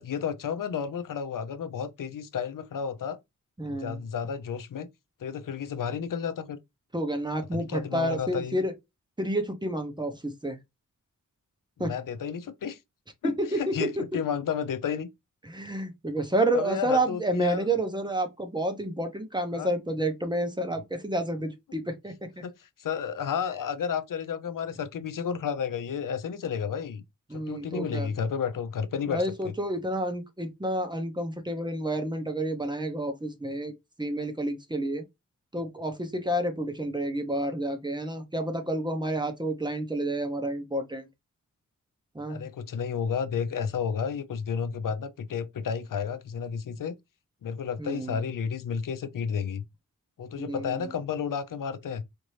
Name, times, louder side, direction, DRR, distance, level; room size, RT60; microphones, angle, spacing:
voice 1, 0.0-3.2 3.7-4.9 5.2-6.6 7.5-8.6 11.8-12.8 13.2-15.1 16.5-17.7 19.5-19.7 22.4-22.5 22.8-27.0 27.3-29.5 42.3-47.0 47.4-49.6 50.2-52.0, left 7 dB, 80° left, 0.6 m, -32 dB
voice 2, 3.6-4.0 6.9-8.7 9.2-10.6 11.8-11.9 13.2-13.9 15.4-22.4 27.3-28.1 29.1-33.7 34.0-35.0 35.5-41.1 42.1-42.5 47.8-48.2 50.4-50.9, right 1 dB, 15° right, 0.7 m, -30 dB
4.3 x 2.6 x 3.2 m
wide cardioid pair, 155°, 32 cm